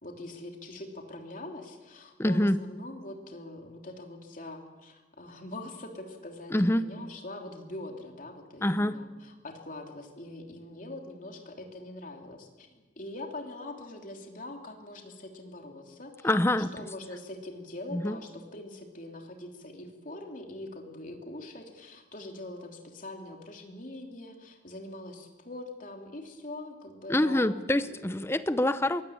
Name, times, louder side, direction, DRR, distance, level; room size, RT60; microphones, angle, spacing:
voice 1, 0.0-28.0, left 2 dB, 45° left, 2 dB, 3.2 m, -43 dB
voice 2, 2.2-2.6 6.5-6.8 8.6-9.0 16.2-16.7 17.9-18.2 27.1-29.0, left 1 dB, 15° left, 13 dB, 0.7 m, -25 dB
22.5 x 17.0 x 8.8 m, 1.3 s
head